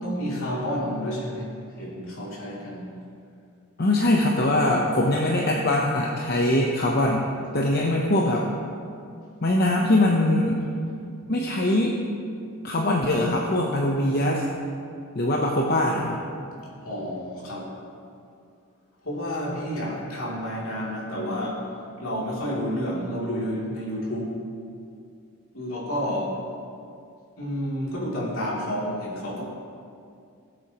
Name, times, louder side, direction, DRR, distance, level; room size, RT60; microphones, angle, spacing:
voice 1, 0.0-1.5 1.8-2.9 16.8-17.7 19.0-21.6 22.0-24.3 25.5-26.4 27.4-29.4, equal, 65° left, -5 dB, 2.8 m, -30 dB
voice 2, 3.8-7.3 7.5-8.5 9.4-10.6 11.3-12.0 12.6-14.4 15.1-16.2, left 1 dB, 45° left, -1 dB, 0.8 m, -22 dB
18.0 x 7.9 x 3.0 m, 2.4 s
head